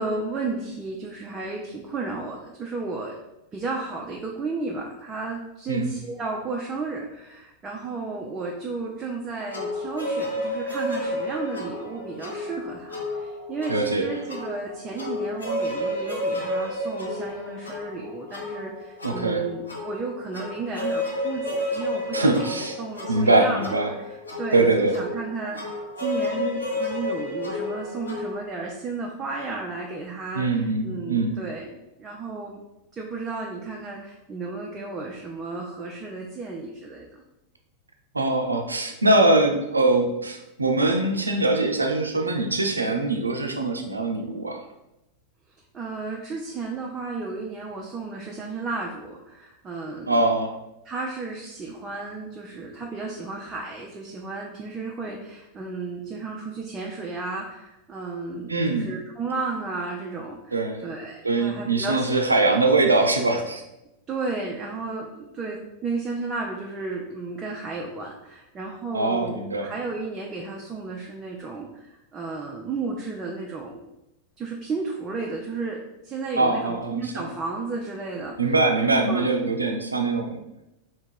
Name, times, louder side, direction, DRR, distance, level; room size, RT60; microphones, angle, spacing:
voice 1, 0.0-3.2 3.5-23.9 24.4-31.7 32.0-32.6 32.9-37.1 45.7-50.2 50.8-60.5 60.8-62.5 64.1-73.8 74.4-75.8 76.0-79.3, right 3 dB, 20° right, -1 dB, 0.6 m, -33 dB
sound 1, 9.5-28.4, left 1 dB, 75° left, 0.9 m, -31 dB
voice 2, 13.7-14.1 19.0-19.5 22.1-22.8 23.1-23.9 24.5-25.0 30.3-31.4 38.1-44.6 50.1-50.5 58.5-58.9 60.5-60.8 61.2-63.6 68.9-69.7 76.4-77.2 78.4-80.4, right 2 dB, 80° right, 4 dB, 0.5 m, -22 dB
3.5 x 2.9 x 4.5 m, 0.92 s
figure-of-eight pair, 90°, 0 cm